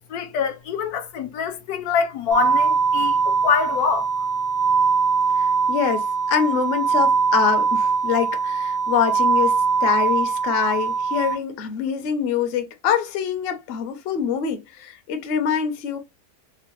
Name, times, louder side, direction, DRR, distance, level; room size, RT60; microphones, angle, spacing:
voice 1, 0.1-4.1, left 6 dB, 80° left, 1.2 m, -24 dB
sound 1, 2.3-11.3, right 5 dB, 90° right, 1.2 m, -21 dB
voice 2, 5.4-16.0, left 8 dB, 60° left, 0.7 m, -25 dB
3.6 x 2.0 x 2.9 m
omnidirectional pair, 1.6 m